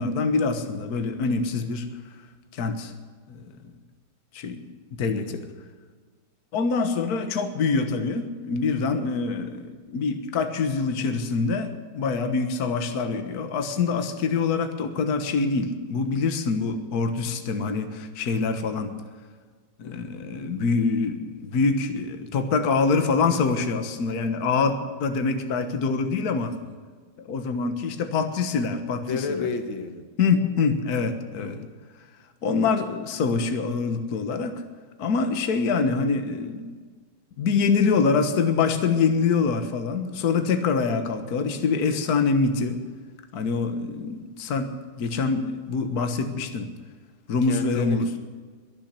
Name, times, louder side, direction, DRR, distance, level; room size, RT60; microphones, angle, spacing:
voice 1, 0.0-1.9 2.5-2.9 3.3-3.5 4.3-4.6 4.9-5.4 6.5-18.9 19.8-26.5 27.2-29.4 30.2-31.6 32.4-34.6 35.0-36.8 37.4-42.8 43.3-44.7 45.0-46.7 47.3-48.1, left 4 dB, 55° left, 7 dB, 1.7 m, -25 dB
voice 2, 5.1-5.5 19.8-20.1 26.5-26.6 29.1-30.1 31.4-31.7 47.4-48.2, left 4 dB, 85° left, 7 dB, 2.2 m, -32 dB
21.5 x 7.5 x 8.2 m, 1.5 s
omnidirectional pair, 2.1 m